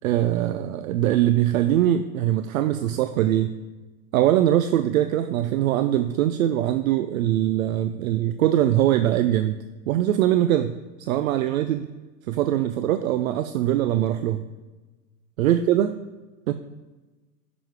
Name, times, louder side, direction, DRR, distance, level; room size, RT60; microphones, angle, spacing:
voice 1, 0.0-3.6 4.1-9.6 9.9-11.9 12.3-14.4 15.4-16.0 16.5-16.6, right 12 dB, 55° right, 10 dB, 0.6 m, -22 dB
9.3 x 6.2 x 4.8 m, 1.2 s
hypercardioid pair, 140°, 49 cm